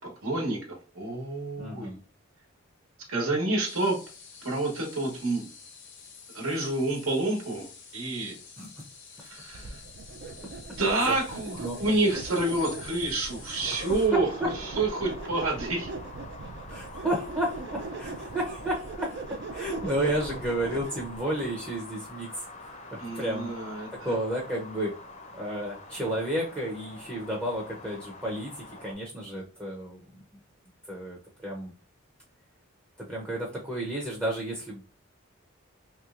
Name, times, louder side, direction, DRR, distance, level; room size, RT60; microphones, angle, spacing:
voice 1, 0.0-1.9 3.1-4.0 4.4-5.5 6.3-8.4 9.2-9.8 10.8-15.9 23.0-24.1, right 2 dB, 85° right, -1 dB, 1.2 m, -29 dB
voice 2, 1.6-2.0 8.6-8.7 11.6-11.8 13.8-13.9 16.7-19.2 19.5-22.4 22.9-23.5 23.9-24.9 25.3-30.2 30.9-31.7 33.0-34.8, right 1 dB, 10° right, -3 dB, 0.6 m, -32 dB
sound 1, 3.7-14.1, left 5 dB, 60° left, 0.8 m, -48 dB
sound 2, 9.5-21.2, right 3 dB, 55° right, 0.4 m, -40 dB
sound 3, 13.6-28.9, left 2 dB, 35° left, 0.6 m, -45 dB
3.1 x 3.0 x 2.4 m, 0.36 s
head